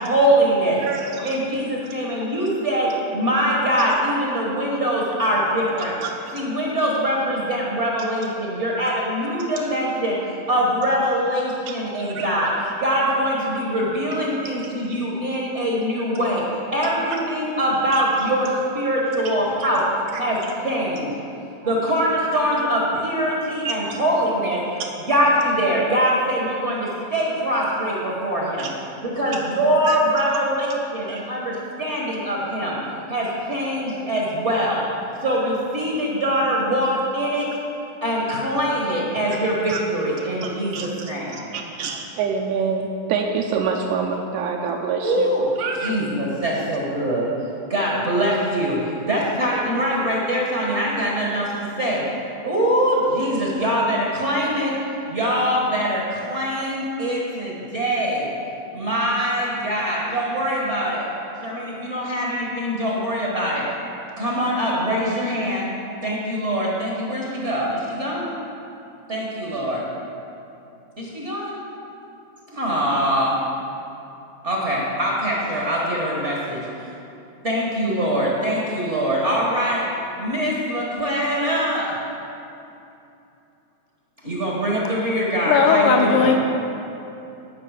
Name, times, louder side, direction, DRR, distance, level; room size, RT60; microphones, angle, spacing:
voice 1, 0.0-0.8 1.2-5.9 6.3-10.2 10.5-12.5 12.8-19.8 20.2-21.1 21.6-24.6 25.1-28.7 29.0-32.8 33.1-34.8 35.2-37.5 38.0-41.4 45.0-45.4 45.8-47.3 47.7-52.0 52.4-54.8 55.1-58.3 58.7-61.1 61.4-63.7 64.2-65.7 66.0-68.3 69.1-69.9 71.0-71.6 72.5-73.4 74.4-76.7 77.4-82.0 84.2-86.4, equal, 50° right, -4 dB, 0.8 m, -23 dB
voice 2, 0.8-1.4 6.0-6.1 11.7-12.3 17.9-18.0 19.2-19.3 20.1-20.2 23.9-24.0 24.8-24.9 28.6-28.7 29.9-30.0 30.6-30.7 31.1-31.2 39.7-39.8 40.4-40.9 41.3-45.3 45.6-45.9, right 5 dB, 85° right, 1 dB, 2.0 m, -27 dB
voice 3, 85.5-86.4, left 5 dB, 85° left, 2 dB, 2.2 m, -17 dB
15.5 x 5.5 x 4.9 m, 2.8 s
omnidirectional pair, 3.5 m